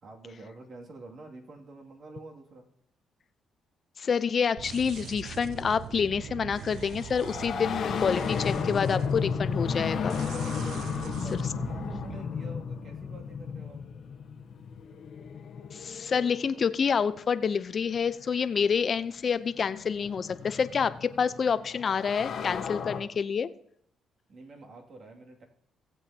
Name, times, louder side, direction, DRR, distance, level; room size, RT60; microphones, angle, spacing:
voice 1, 0.0-2.7 10.6-13.9 24.3-25.5, right 2 dB, 55° right, 1 dB, 2.4 m, -47 dB
voice 2, 4.0-10.2 15.7-23.5, left 6 dB, 45° left, 13 dB, 0.6 m, -28 dB
sound 1, 4.6-12.2, right 9 dB, 70° right, 0.3 m, -41 dB
sound 2, 6.3-16.9 18.1-18.2 19.3-23.0, left 6 dB, 60° left, 1.2 m, -34 dB
17.0 x 8.0 x 2.8 m, 0.69 s
cardioid pair, 90°, 0 cm